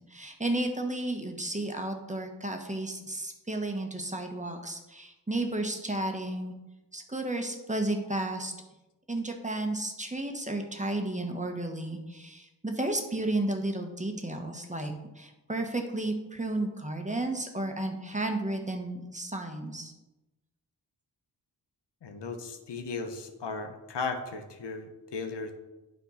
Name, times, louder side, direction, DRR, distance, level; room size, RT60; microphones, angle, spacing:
voice 1, 0.1-6.5 6.9-8.5 9.1-19.9, right 2 dB, 15° right, 3 dB, 1.3 m, -33 dB
voice 2, 22.0-25.5, left 4 dB, 75° left, 6 dB, 1.0 m, -36 dB
9.1 x 3.4 x 5.6 m, 1.0 s
cardioid pair, 45°, 42 cm